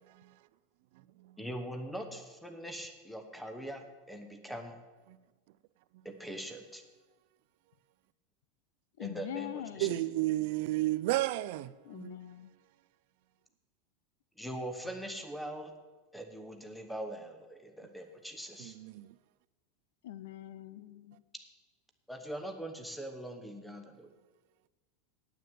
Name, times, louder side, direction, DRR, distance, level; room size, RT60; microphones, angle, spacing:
voice 1, 1.4-4.8 6.0-6.8 9.0-9.9 14.4-15.7 16.1-18.8 22.1-24.1, right 1 dB, ahead, 0.9 m, -42 dB
voice 2, 9.0-10.1 11.8-12.5 20.0-21.2, left 12 dB, 75° left, 0.6 m, -43 dB
voice 3, 9.8-12.2 18.6-19.1, right 16 dB, 55° right, 0.4 m, -32 dB
9.2 x 9.2 x 7.7 m
supercardioid pair, 170°, 0 cm